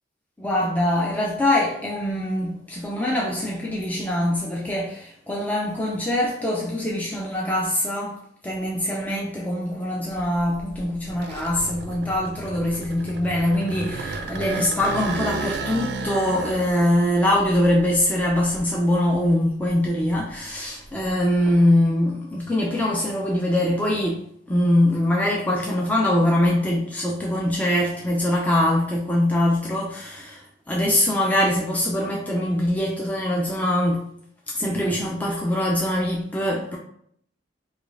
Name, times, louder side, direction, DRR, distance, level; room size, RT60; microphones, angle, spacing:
voice 1, 0.4-8.2 8.4-34.1 34.5-36.8, left 1 dB, 10° left, -3 dB, 0.4 m, -23 dB
sound 1, 10.2-19.2 19.6-21.5, right 4 dB, 60° right, 0.4 m, -34 dB
4.9 x 2.3 x 2.4 m, 0.67 s
head